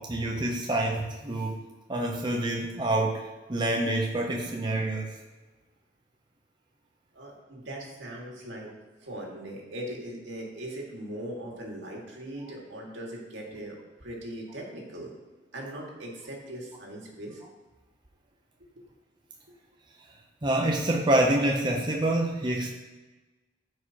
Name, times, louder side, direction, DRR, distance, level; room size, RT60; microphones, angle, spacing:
voice 1, 0.0-5.1 20.4-22.8, right 1 dB, 25° right, 0 dB, 0.5 m, -27 dB
voice 2, 7.1-8.7 9.0-15.1 15.5-17.4, right 1 dB, 75° right, -1 dB, 1.8 m, -40 dB
13.5 x 4.8 x 2.9 m, 1.2 s
head